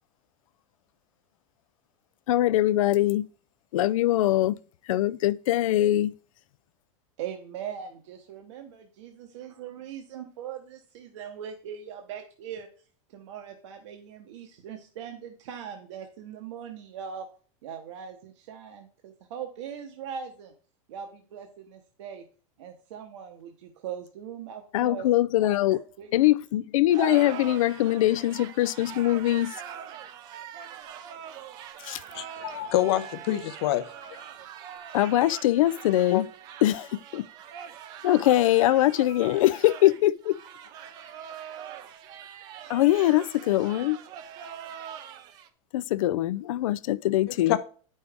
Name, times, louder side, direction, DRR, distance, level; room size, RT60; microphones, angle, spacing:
voice 1, 2.3-3.3 3.7-4.6 4.8-6.2 24.7-25.8 26.1-29.6 31.8-32.0 34.9-36.3 36.6-37.3 38.0-40.4 42.7-44.0 45.7-47.6, left 15 dB, 85° left, 0.4 m, -23 dB
voice 2, 7.2-12.7 13.1-17.3 17.6-20.5 20.9-22.2 22.6-25.1 25.4-26.1 27.0-27.6, right 8 dB, 60° right, 1.0 m, -40 dB
sound 1, 26.9-45.5, right 9 dB, 25° right, 0.4 m, -43 dB
voice 3, 32.1-33.8 36.1-36.2 47.5-47.6, left 13 dB, 50° left, 0.7 m, -26 dB
9.4 x 5.4 x 3.5 m
supercardioid pair, 180°, 17 cm